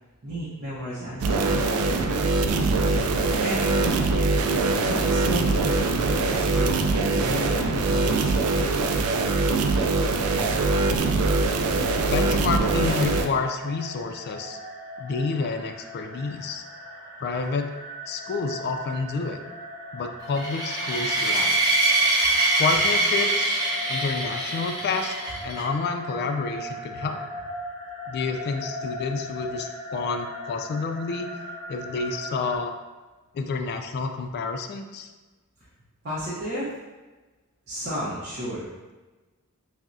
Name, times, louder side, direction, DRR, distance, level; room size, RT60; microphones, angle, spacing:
voice 1, 0.2-1.7 3.4-4.0 4.8-6.7 7.1-8.8 26.9-27.0 36.0-36.7 37.7-38.7, equal, 50° right, -9 dB, 0.8 m, -33 dB
sound 1, 1.2-13.3, right 3 dB, 75° right, 0.4 m, -23 dB
voice 2, 12.0-14.6 15.0-16.6 17.2-17.7 18.1-19.4 19.9-21.6 22.6-23.6 23.9-25.1 25.4-27.2 28.1-31.3 31.7-32.7 33.3-35.1, left 4 dB, 45° left, 6 dB, 0.3 m, -29 dB
sound 2, 13.0-32.6, left 1 dB, ahead, 1.0 m, -39 dB
sound 3, 20.3-25.6, right 2 dB, 15° right, 0.7 m, -24 dB
5.8 x 2.1 x 2.6 m, 1.2 s
head